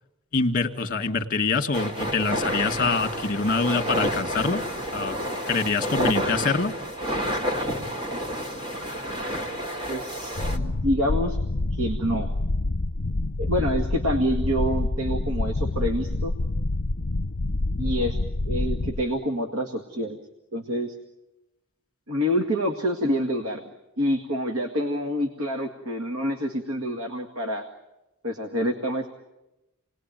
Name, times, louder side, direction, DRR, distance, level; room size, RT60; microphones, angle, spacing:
voice 1, 0.3-4.6 4.9-5.2 5.5-6.7, left 4 dB, 40° left, 6 dB, 2.1 m, -25 dB
sound 1, 1.7-10.6, equal, 20° right, 2.2 m, -29 dB
voice 2, 9.9-11.4 11.7-12.3 13.4-16.3 17.8-18.2 18.4-20.2 20.5-21.0 22.1-27.7 28.2-29.1, equal, 70° right, 6 dB, 1.9 m, -27 dB
sound 2, 10.4-19.0, left 2 dB, 55° left, 0.9 m, -27 dB
28.5 x 19.5 x 9.3 m, 1.0 s
head